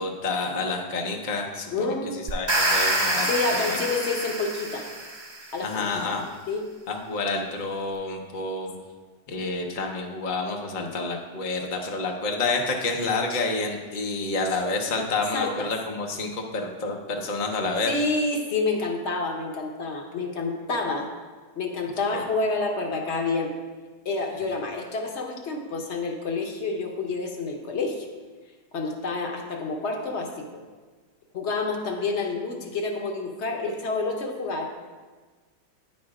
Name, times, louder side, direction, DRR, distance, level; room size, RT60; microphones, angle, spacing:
voice 1, 0.0-1.9 2.3-3.8 5.6-6.3 6.9-8.7 9.3-17.9 22.1-22.2, left 3 dB, 75° left, 2 dB, 0.4 m, -29 dB
voice 2, 1.7-2.1 3.2-4.9 5.5-6.2 6.5-6.6 15.3-15.7 17.9-21.1 21.6-23.5 24.0-28.1 28.7-30.6 31.3-34.7, left 3 dB, 55° left, 3 dB, 0.8 m, -28 dB
sound 1, 2.3-5.5, right 1 dB, 25° right, 0.6 m, -26 dB
9.4 x 4.3 x 4.8 m, 1.4 s
omnidirectional pair, 1.9 m